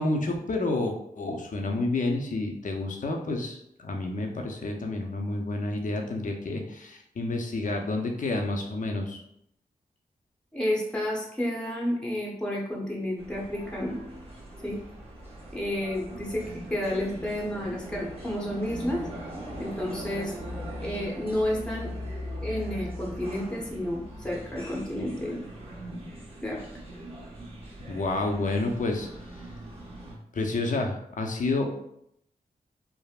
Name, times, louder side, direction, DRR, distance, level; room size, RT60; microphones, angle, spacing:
voice 1, 0.0-9.2 27.9-29.1 30.3-31.7, left 2 dB, 55° left, 2 dB, 0.6 m, -29 dB
voice 2, 10.5-14.0 14.6-14.8 15.5-16.4 16.7-19.0 19.6-20.3 20.8-21.9 22.4-25.4 26.4-26.6, left 1 dB, 5° left, -3 dB, 0.8 m, -31 dB
sound 1, 13.2-30.1, equal, 35° right, 1.0 m, -40 dB
3.4 x 2.0 x 2.4 m, 0.75 s
cardioid pair, 45°, 16 cm